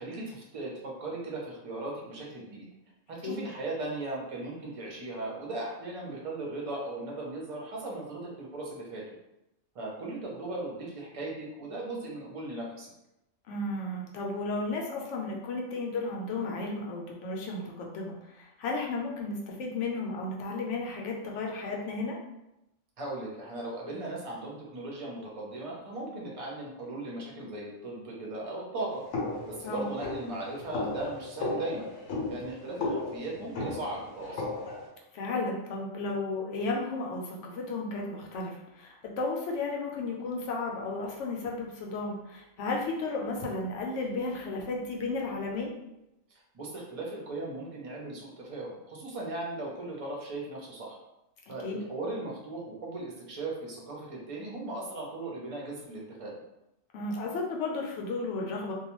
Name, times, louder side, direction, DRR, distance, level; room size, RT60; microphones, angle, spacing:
voice 1, 0.0-2.7 3.1-9.0 9.7-12.9 23.0-29.0 29.5-31.9 32.3-34.4 46.5-51.0 51.5-56.3, right 2 dB, 40° right, -3 dB, 0.5 m, -37 dB
voice 2, 13.5-22.2 29.6-29.9 35.1-45.7 51.6-51.8 56.9-58.7, left 3 dB, 75° left, -1 dB, 0.9 m, -33 dB
sound 1, 29.1-34.9, left 2 dB, 90° left, 1.0 m, -35 dB
2.3 x 2.2 x 2.9 m, 0.89 s
omnidirectional pair, 1.3 m